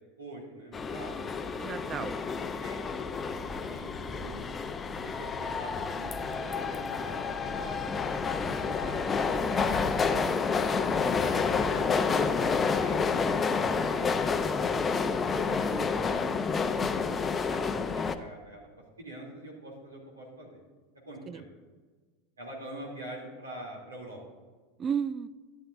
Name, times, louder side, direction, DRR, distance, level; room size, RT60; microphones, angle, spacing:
voice 1, 0.2-1.4 2.6-2.8 3.1-4.5 5.0-7.8 8.1-10.2 11.2-15.2 15.6-16.3 17.5-18.7 19.0-20.6 21.1-21.5 22.4-24.2, right 1 dB, 85° right, -2 dB, 2.9 m, -45 dB
sound 1, 0.7-18.2, left 5 dB, 25° left, 0.6 m, -29 dB
voice 2, 1.6-2.1 10.2-10.3 15.4-15.9 16.8-17.2 21.3-21.4 24.8-25.3, right 7 dB, 30° right, 14 dB, 0.5 m, -35 dB
13.5 x 11.0 x 2.6 m, 1.4 s
hypercardioid pair, 85°, 0 cm